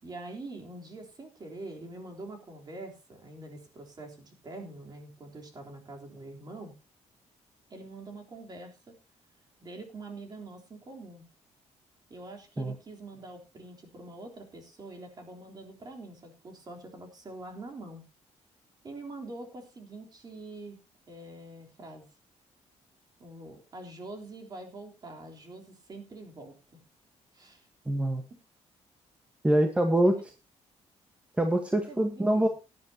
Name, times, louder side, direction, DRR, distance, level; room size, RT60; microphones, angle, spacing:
voice 1, 0.0-6.7 7.7-9.0 9.6-11.2 12.1-18.0 18.8-20.8 21.1-22.1 23.2-26.8 27.3-27.7 28.3-28.4 31.9-32.5, right 2 dB, 35° right, 2 dB, 3.6 m, -45 dB
voice 2, 27.9-28.2 29.4-30.3 31.4-32.5, right 1 dB, 10° right, 5 dB, 1.2 m, -25 dB
17.5 x 10.5 x 2.8 m, 0.28 s
cardioid pair, 135°, 12 cm